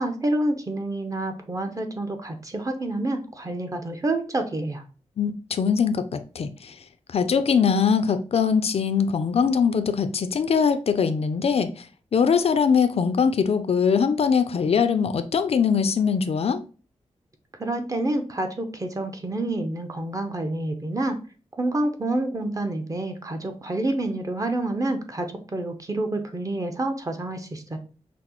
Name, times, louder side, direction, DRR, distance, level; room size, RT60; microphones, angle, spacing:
voice 1, 0.0-4.8 17.6-21.2 21.6-27.8, right 2 dB, 30° right, 0.7 m, -28 dB
voice 2, 5.2-6.7 7.1-11.8 12.1-16.6, left 6 dB, 60° left, 0.4 m, -22 dB
5.8 x 2.0 x 2.9 m
wide cardioid pair, 95°, 12 cm